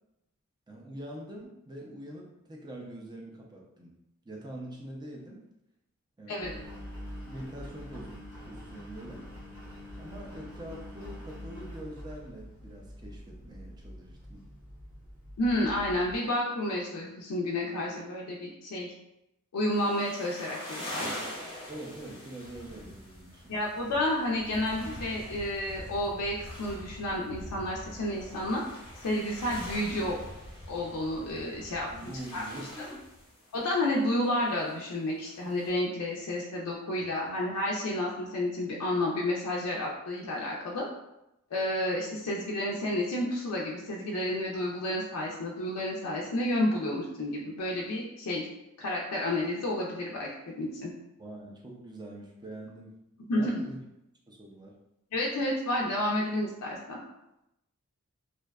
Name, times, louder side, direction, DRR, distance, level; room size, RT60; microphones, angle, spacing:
voice 1, 0.7-4.0 4.2-5.4 6.2-6.5 7.2-9.3 10.0-14.4 21.7-23.5 31.9-33.1 37.0-37.1 51.2-53.8 54.3-54.7, right 1 dB, 20° right, -1 dB, 0.4 m, -44 dB
Engine, 6.4-16.2, left 1 dB, 75° right, 0.9 m, -45 dB
voice 2, 15.4-18.9 19.5-21.1 23.5-28.6 29.0-30.2 30.7-32.5 33.5-40.9 41.5-48.5 48.8-50.9 53.3-53.4 55.1-57.0, left 1 dB, 85° left, -3 dB, 0.4 m, -31 dB
sound 1, 19.7-35.7, equal, 25° left, 0.6 m, -44 dB
2.5 x 2.2 x 2.2 m, 0.86 s
head